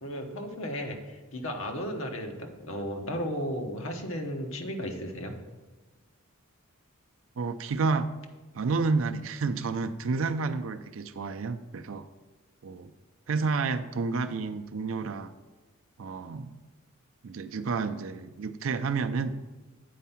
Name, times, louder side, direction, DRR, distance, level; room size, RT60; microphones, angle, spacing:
voice 1, 0.0-5.3, equal, 65° left, 3 dB, 1.1 m, -34 dB
voice 2, 7.4-8.1 8.5-12.1 12.6-12.9 13.3-15.3 16.0-16.5 17.2-19.4, right 4 dB, 65° right, 9 dB, 0.5 m, -30 dB
8.5 x 4.6 x 5.7 m, 1.2 s
head